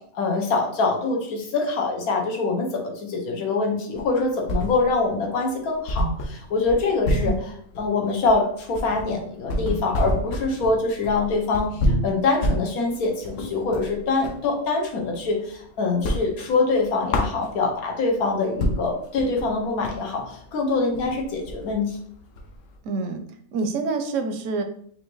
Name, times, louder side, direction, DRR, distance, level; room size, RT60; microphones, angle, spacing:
voice 1, 0.0-7.3 7.8-22.0, left 3 dB, 80° left, 1 dB, 1.4 m, -24 dB
sound 1, 3.9-5.1 5.4-5.5 5.9-14.5 14.8-15.6 15.9-17.9 18.3-18.4 18.6-22.7, equal, 65° left, 1.0 m, -28 dB
voice 2, 22.8-23.2 23.5-24.6, right 3 dB, 70° right, 7 dB, 0.9 m, -27 dB
4.8 x 2.8 x 3.0 m, 0.63 s
omnidirectional pair, 1.5 m